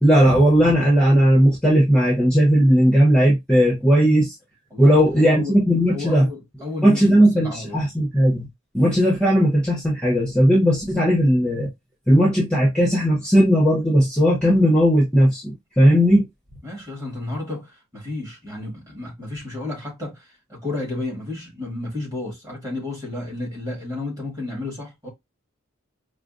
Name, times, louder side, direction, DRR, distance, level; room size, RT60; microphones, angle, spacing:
voice 1, 0.0-4.3 4.8-6.3 6.8-8.5 8.7-11.7 12.1-16.2, equal, 5° left, 0.8 m, -17 dB
voice 2, 4.7-5.6 5.9-7.8 16.6-25.1, left 2 dB, 15° right, 1.7 m, -32 dB
4.9 x 2.0 x 2.5 m
head